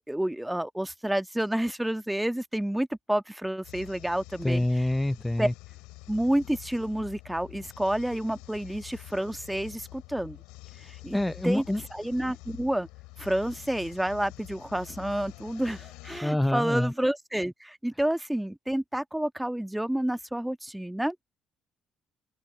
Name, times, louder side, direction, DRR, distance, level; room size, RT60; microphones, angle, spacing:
voice 1, 0.1-4.6 5.4-5.5 6.1-10.4 10.8-11.2 11.4-11.6 11.9-12.9 13.2-21.1, right 1 dB, 5° right, 1.4 m, -29 dB
sound 1, 3.6-16.2, left 23 dB, 70° left, 6.8 m, -47 dB
voice 2, 4.4-5.5 11.1-11.8 16.2-16.9, left 1 dB, 10° left, 0.7 m, -26 dB
open air
hypercardioid pair, 50°, 0 cm